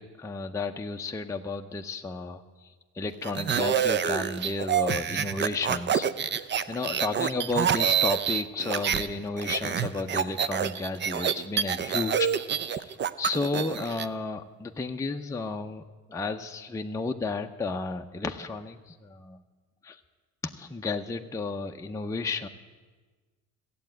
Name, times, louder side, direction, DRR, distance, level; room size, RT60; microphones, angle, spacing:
voice 1, 0.0-2.4 3.0-6.1 6.7-15.8 16.1-19.4 19.8-20.0 20.6-22.5, left 3 dB, 10° left, 3 dB, 0.6 m, -32 dB
sound 1, 3.2-9.1 9.4-14.1, right 8 dB, 35° right, 0.6 m, -27 dB
14.0 x 8.4 x 9.0 m, 1.3 s
cardioid pair, 105°, 31 cm